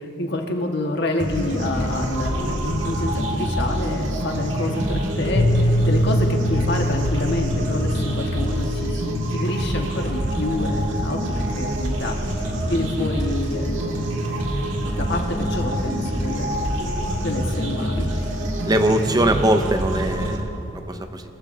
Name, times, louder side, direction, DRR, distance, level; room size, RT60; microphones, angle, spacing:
voice 1, 0.0-14.3 14.7-16.7 17.2-18.1, left 2 dB, 65° left, 2 dB, 1.5 m, -28 dB
sound 1, 1.2-20.4, equal, 80° right, 1.6 m, -26 dB
Piano, 5.4-11.0, left 1 dB, 30° left, 0.6 m, -25 dB
voice 2, 18.7-21.2, right 1 dB, 20° right, 7 dB, 0.6 m, -21 dB
23.5 x 14.5 x 2.7 m, 3.0 s
head